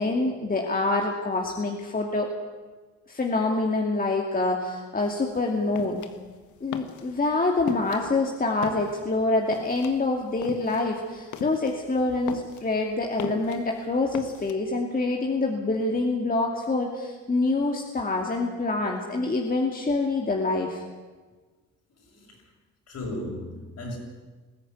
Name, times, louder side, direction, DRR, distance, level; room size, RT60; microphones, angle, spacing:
voice 1, 0.0-2.3 3.1-6.0 6.6-20.8, left 2 dB, 30° left, 1 dB, 2.6 m, -26 dB
sound 1, 5.0-14.5, left 8 dB, 75° left, 1.7 m, -40 dB
voice 2, 6.7-7.1 22.0-22.4 22.9-24.0, left 1 dB, 60° left, 0 dB, 7.3 m, -36 dB
21.0 x 14.5 x 9.6 m, 1.3 s
cardioid pair, 90°, 30 cm